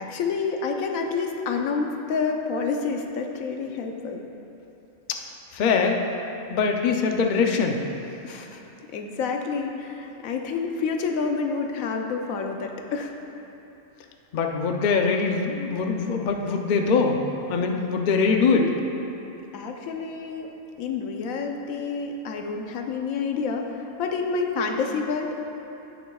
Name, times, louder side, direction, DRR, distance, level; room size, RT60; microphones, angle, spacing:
voice 1, 0.0-4.2 8.2-8.6 8.9-13.1 18.5-18.7 19.5-20.5 20.8-25.5, left 5 dB, 85° left, 3 dB, 1.1 m, -28 dB
voice 2, 5.5-6.0 6.5-7.8 14.3-17.2 17.5-18.6, left 5 dB, 50° left, 3 dB, 0.6 m, -22 dB
16.0 x 6.2 x 2.3 m, 2.9 s
omnidirectional pair, 1.4 m